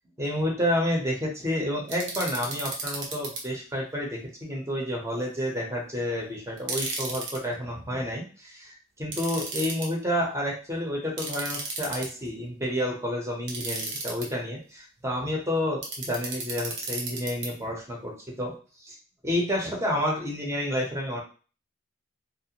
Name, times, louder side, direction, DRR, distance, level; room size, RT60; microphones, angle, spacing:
voice 1, 0.2-18.5 18.8-19.0 19.2-21.2, equal, 15° right, -1 dB, 0.7 m, -30 dB
sound 1, 1.9-3.4 6.6-7.4 9.1-9.9 11.2-12.3 13.5-14.3 15.8-17.5, right 3 dB, 65° right, 0.7 m, -33 dB
2.4 x 2.2 x 2.8 m, 0.37 s
head